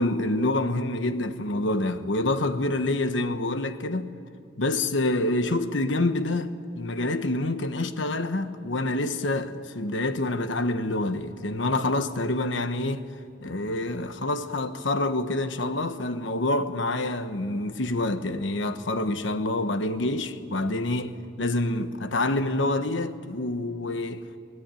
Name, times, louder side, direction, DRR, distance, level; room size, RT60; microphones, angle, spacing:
voice 1, 0.0-4.1 4.6-13.0 13.4-24.2, left 2 dB, 75° left, 1.2 m, -27 dB
24.0 x 18.0 x 9.1 m
head